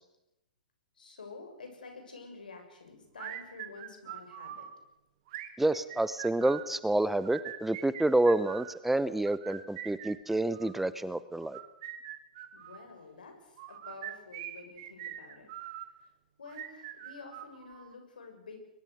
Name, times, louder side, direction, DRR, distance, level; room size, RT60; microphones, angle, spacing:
voice 1, 0.9-4.7 12.5-15.8 16.4-18.6, left 4 dB, 75° left, 4 dB, 7.1 m, -49 dB
sound 1, 3.2-4.7 5.3-6.7 7.2-8.8 9.3-10.8 11.4-12.8 13.6-15.9 16.5-17.9, right 12 dB, 50° right, 2.9 m, -43 dB
voice 2, 5.6-11.6, right 2 dB, 5° right, 15 dB, 0.8 m, -28 dB
22.5 x 22.0 x 6.6 m, 0.90 s
figure-of-eight pair, 115°, 5 cm